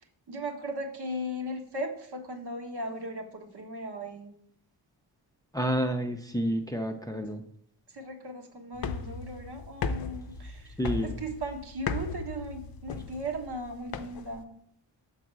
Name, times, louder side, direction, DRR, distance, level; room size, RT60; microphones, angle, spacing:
voice 1, 0.3-4.3 7.9-14.5, right 1 dB, 60° right, 3 dB, 1.4 m, -37 dB
voice 2, 5.5-7.4 10.8-11.2, equal, 10° left, 4 dB, 0.6 m, -29 dB
sound 1, 8.7-14.4, left 4 dB, 50° left, 0.6 m, -36 dB
7.1 x 4.0 x 6.1 m, 0.66 s
cardioid pair, 90°, 45 cm